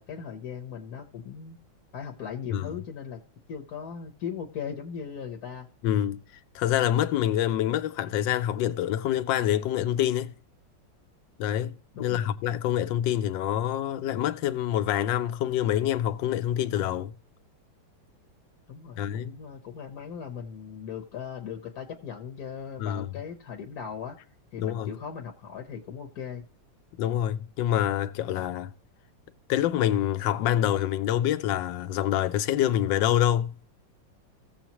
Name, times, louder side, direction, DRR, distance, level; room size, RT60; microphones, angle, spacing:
voice 1, 0.0-1.6 1.9-3.2 3.5-5.7 11.9-12.3 18.7-24.2 24.5-26.4, left 7 dB, 55° left, 1.4 m, -38 dB
voice 2, 5.8-6.2 6.5-10.3 11.4-11.7 12.0-17.1 19.0-19.3 22.8-23.1 24.6-24.9 27.0-28.7 29.5-33.5, left 11 dB, 75° left, 1.3 m, -26 dB
16.0 x 7.2 x 3.0 m
omnidirectional pair, 2.1 m